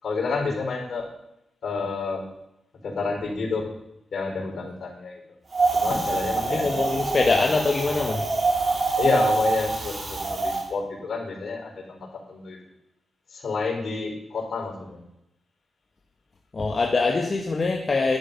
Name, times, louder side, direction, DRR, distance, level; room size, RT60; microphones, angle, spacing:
voice 1, 0.0-1.0 1.6-2.2 2.8-3.7 4.1-5.2 5.7-6.8 9.0-12.0 12.3-12.6 13.3-15.0, left 4 dB, 65° left, 0 dB, 4.7 m, -29 dB
Wind, 5.5-10.6, right 3 dB, 45° right, 3.0 m, -25 dB
voice 2, 6.4-8.3 16.5-18.2, left 3 dB, 40° left, 0 dB, 1.5 m, -23 dB
11.5 x 11.5 x 5.4 m, 0.84 s
wide cardioid pair, 110°, 0 cm